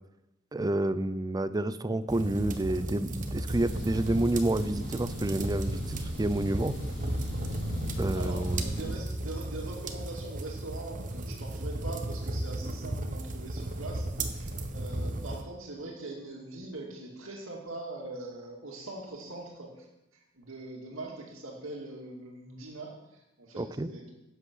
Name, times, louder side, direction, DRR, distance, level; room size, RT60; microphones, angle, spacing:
voice 1, 0.5-6.7 8.0-8.6 23.6-23.9, right 1 dB, 20° right, 14 dB, 0.5 m, -29 dB
sound 1, 2.1-15.4, right 1 dB, 40° right, 1.1 m, -35 dB
sound 2, 3.5-8.9, left 1 dB, 75° left, 4.5 m, -39 dB
voice 2, 8.1-19.9 20.3-24.1, right 2 dB, 90° right, -1 dB, 2.3 m, -42 dB
11.0 x 8.3 x 6.2 m, 0.94 s
head